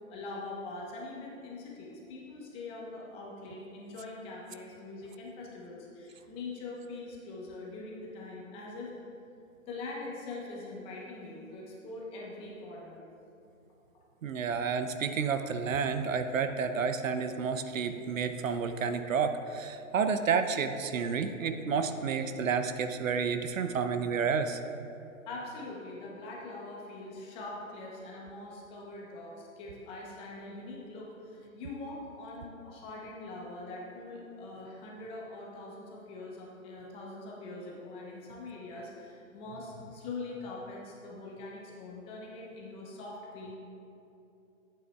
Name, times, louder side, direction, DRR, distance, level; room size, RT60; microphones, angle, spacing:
voice 1, 0.1-8.9 9.7-13.0 25.3-43.6, left 2 dB, 15° left, -3 dB, 0.8 m, -43 dB
voice 2, 14.2-24.6, right 6 dB, 70° right, 9 dB, 0.7 m, -30 dB
12.5 x 8.5 x 2.3 m, 2.8 s
hypercardioid pair, 145°, 42 cm